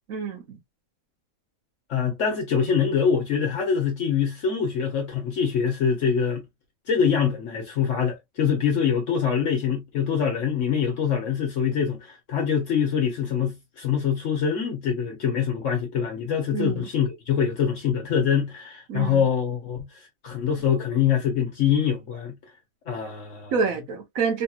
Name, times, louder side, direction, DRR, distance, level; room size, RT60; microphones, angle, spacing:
voice 1, 0.1-0.6 16.5-16.9 18.9-19.2 23.5-24.4, right 5 dB, 75° right, 1.2 m, -27 dB
voice 2, 1.9-6.4 6.9-22.3 22.9-23.5, left 7 dB, 65° left, 1.1 m, -24 dB
3.5 x 2.8 x 2.3 m
omnidirectional pair, 1.4 m